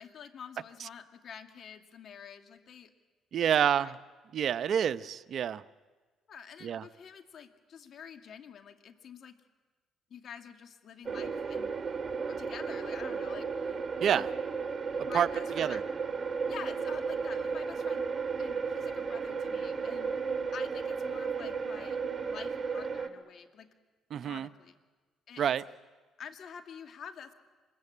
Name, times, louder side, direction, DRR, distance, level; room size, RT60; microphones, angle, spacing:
voice 1, 0.0-2.9 3.4-3.9 6.3-9.4 10.1-11.8 12.3-13.8 14.1-14.3 15.0-15.8 16.5-18.0 18.4-20.2 20.5-22.0 22.2-23.7 24.1-24.8 25.3-25.6 26.2-27.3, left 7 dB, 60° left, 6 dB, 2.4 m, -48 dB
voice 2, 3.3-3.9 4.3-5.6 6.6-6.8 14.0-14.3 15.1-15.3 15.6-15.8 24.1-24.5 25.4-25.6, right 9 dB, 60° right, 14 dB, 0.8 m, -28 dB
sound 1, 11.0-23.1, right 5 dB, 35° right, 2.7 m, -34 dB
26.5 x 22.0 x 8.6 m, 1.3 s
supercardioid pair, 70°, 0 cm